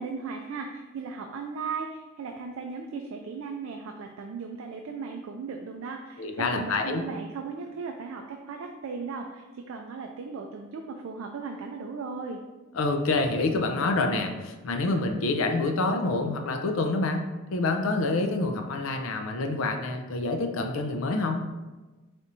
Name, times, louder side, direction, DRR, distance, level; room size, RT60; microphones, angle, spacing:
voice 1, 0.0-12.4, right 5 dB, 75° right, 3 dB, 0.3 m, -37 dB
voice 2, 6.2-7.0 12.7-17.2 17.5-21.4, left 3 dB, 80° left, 4 dB, 0.5 m, -27 dB
4.1 x 3.4 x 2.6 m, 1.2 s
head